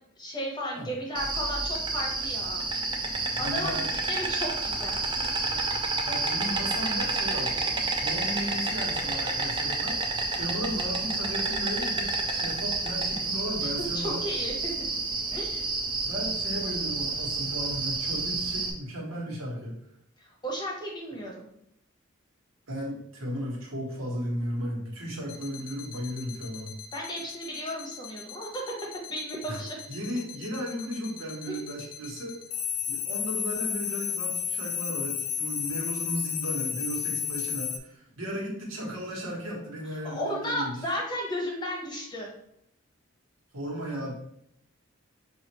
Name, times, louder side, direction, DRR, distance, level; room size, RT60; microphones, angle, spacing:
voice 1, 0.2-2.7 3.4-5.0 10.4-10.5 14.0-14.7 15.3-15.6 20.2-21.5 26.9-28.6 29.1-29.8 31.5-31.7 40.0-42.3, equal, 20° left, -2 dB, 0.9 m, -34 dB
Insect, 1.2-18.7, right 3 dB, 20° right, 0.4 m, -29 dB
voice 2, 3.3-3.9 6.0-7.5 8.0-10.0 10.3-14.2 16.0-19.8 22.7-26.8 29.5-29.6 29.9-32.3 32.9-40.8 43.5-44.1, equal, 80° right, -3 dB, 1.3 m, -35 dB
sound 1, 25.3-37.8, left 8 dB, 85° left, 0.5 m, -33 dB
5.5 x 2.5 x 3.0 m, 0.76 s
head